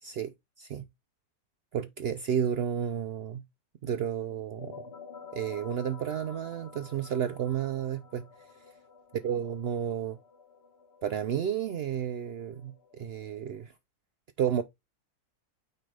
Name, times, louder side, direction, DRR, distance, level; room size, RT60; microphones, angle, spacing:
voice 1, 0.0-0.8 1.7-3.4 3.8-4.8 5.3-8.3 9.2-10.2 11.0-13.7 14.4-14.6, right 9 dB, 80° right, 0.5 m, -32 dB
sound 1, 4.3-13.7, left 5 dB, 45° left, 1.7 m, -51 dB
9.3 x 3.9 x 3.4 m
omnidirectional pair, 1.7 m